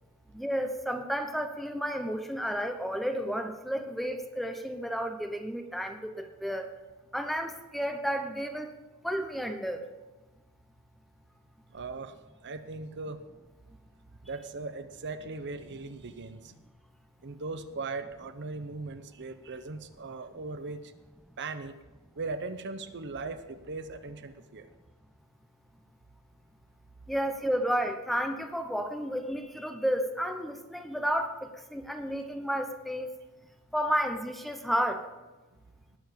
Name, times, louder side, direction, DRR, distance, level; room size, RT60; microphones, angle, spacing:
voice 1, 0.3-6.7 7.1-8.7 9.0-9.9 27.1-33.1 33.7-35.1, equal, ahead, 6 dB, 1.0 m, -32 dB
voice 2, 11.7-12.1 12.4-13.2 14.2-16.5 17.2-20.9 21.4-21.8 22.2-24.7, right 3 dB, 55° right, 9 dB, 0.8 m, -39 dB
19.5 x 7.1 x 5.2 m, 1.1 s
head